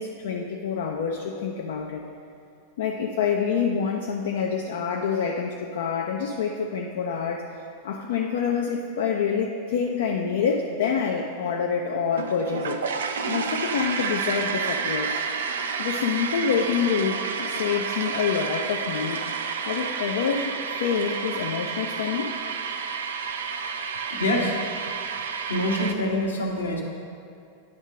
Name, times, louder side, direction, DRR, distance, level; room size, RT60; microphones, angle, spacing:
voice 1, 0.0-2.0 2.8-7.4 7.8-12.8 13.3-15.2 15.8-19.2 19.7-22.3, left 6 dB, 60° left, 1 dB, 0.5 m, -27 dB
sound 1, 12.1-25.9, right 5 dB, 65° right, 0.4 m, -30 dB
voice 2, 24.1-24.5 25.5-26.8, left 1 dB, 75° left, -1 dB, 1.1 m, -25 dB
9.5 x 3.6 x 6.2 m, 2.4 s
figure-of-eight pair, 90°, 0 cm